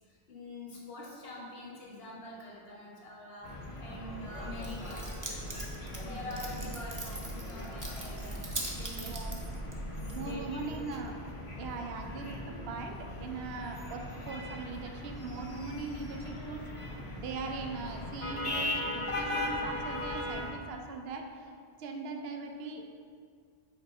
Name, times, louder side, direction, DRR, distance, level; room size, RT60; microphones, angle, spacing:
voice 1, 0.0-5.3 5.6-9.2 10.0-10.6, left 1 dB, 65° left, -4 dB, 1.5 m, -46 dB
sound 1, 3.4-20.5, left 1 dB, 35° left, 0.6 m, -39 dB
Keys jangling, 4.4-10.4, right 2 dB, 20° right, 0.6 m, -41 dB
voice 2, 9.0-9.4 10.1-11.2 11.6-16.9 17.2-21.5 21.8-22.8, right 4 dB, 70° right, 3 dB, 0.8 m, -40 dB
6.6 x 3.8 x 4.7 m, 2.1 s
omnidirectional pair, 1.1 m